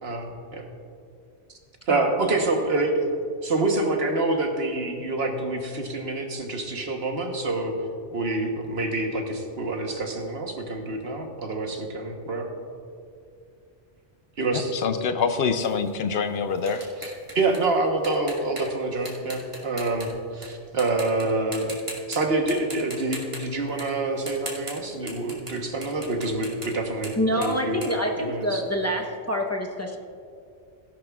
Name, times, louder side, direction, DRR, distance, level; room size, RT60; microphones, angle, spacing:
voice 1, 0.0-0.6 1.9-3.1 3.4-7.7 8.1-12.5 14.4-14.7 17.3-21.7 22.1-27.8 28.2-28.6, right 2 dB, 65° right, 3 dB, 1.3 m, -27 dB
voice 2, 1.9-2.2 27.2-30.0, equal, 15° left, 0 dB, 0.8 m, -26 dB
voice 3, 14.5-16.9, left 5 dB, 65° left, 9 dB, 0.8 m, -25 dB
sound 1, 15.6-20.5 20.8-21.2 21.5-22.2 22.5-28.8, right 1 dB, 25° right, 1.9 m, -40 dB
17.0 x 11.0 x 2.4 m, 2.4 s
omnidirectional pair, 1.2 m